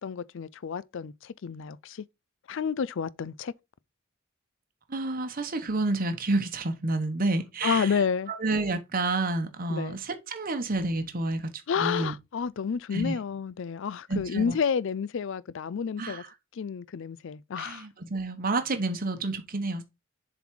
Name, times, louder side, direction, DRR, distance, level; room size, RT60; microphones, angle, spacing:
voice 1, 0.0-2.0 2.5-3.5 7.6-8.3 9.7-10.0 11.7-16.2 16.6-17.9, left 6 dB, 65° left, 0.4 m, -30 dB
voice 2, 4.9-8.0 8.3-11.5 11.8-12.1 12.9-13.1 14.1-14.5 16.0-16.3 17.6-19.8, right 2 dB, 45° right, 1.0 m, -29 dB
7.1 x 4.0 x 4.6 m
head